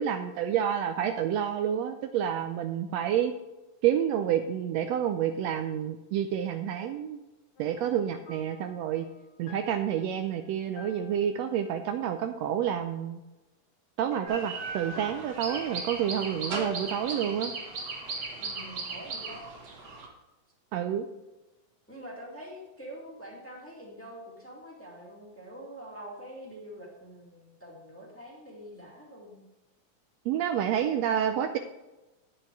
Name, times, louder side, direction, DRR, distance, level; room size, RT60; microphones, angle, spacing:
voice 1, 0.0-3.3 3.8-7.2 7.6-9.0 9.4-13.2 14.0-17.5 20.7-21.1 30.2-31.6, right 9 dB, 90° right, 7 dB, 1.5 m, -29 dB
sound 1, 7.6-12.8 14.1-16.2, left 3 dB, 50° left, 1.8 m, -51 dB
sound 2, 14.3-20.1, right 3 dB, 55° right, 2.8 m, -37 dB
voice 2, 18.4-19.5 21.9-29.4 30.6-30.9, equal, 5° left, -4 dB, 1.9 m, -45 dB
9.9 x 7.8 x 4.7 m, 1.0 s
omnidirectional pair, 3.6 m